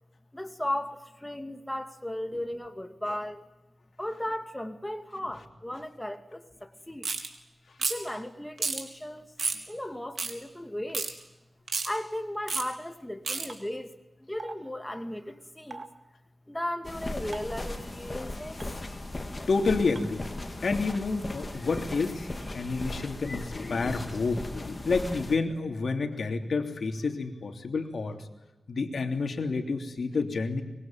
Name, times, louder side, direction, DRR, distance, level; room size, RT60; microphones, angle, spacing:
voice 1, 0.3-3.4 4.0-7.1 7.9-9.4 9.7-11.1 11.8-13.9 14.2-15.9 16.5-19.0, left 1 dB, 10° left, 6 dB, 2.3 m, -36 dB
sound 1, 7.0-7.3 7.8-8.1 8.6-8.8 9.4-9.6 10.2-10.3 10.9-11.1 11.7-11.9 12.5-12.6 13.3-13.5, right 4 dB, 70° right, 3.9 m, -30 dB
sound 2, 13.5-13.6 14.4-14.6 15.7-15.9 17.3-17.6 18.6-18.7 20.0-20.1, right 3 dB, 50° right, 2.7 m, -40 dB
sound 3, 16.8-25.4, left 2 dB, 30° left, 3.2 m, -37 dB
voice 2, 19.5-20.3 20.6-22.3 22.5-28.2 28.7-30.6, left 4 dB, 70° left, 5 dB, 3.1 m, -29 dB
25.0 x 22.5 x 9.2 m, 1.0 s
wide cardioid pair, 95°, 0 cm